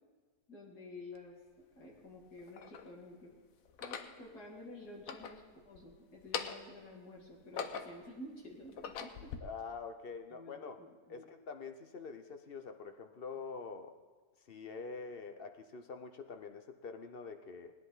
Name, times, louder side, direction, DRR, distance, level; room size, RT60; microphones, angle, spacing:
voice 1, 0.5-1.4 1.7-3.3 3.8-9.3 10.3-11.3, left 1 dB, 85° left, -2 dB, 3.0 m, -51 dB
sound 1, 1.2-1.3 2.1-2.9 3.7-4.2 4.9-5.8 6.2-6.8 7.3-8.1 8.6-9.4, left 6 dB, 65° left, 1.1 m, -42 dB
voice 2, 9.4-10.8 11.1-13.9 14.5-17.7, left 5 dB, 50° left, 6 dB, 0.8 m, -45 dB
18.5 x 10.5 x 4.0 m, 1.5 s
omnidirectional pair, 1.6 m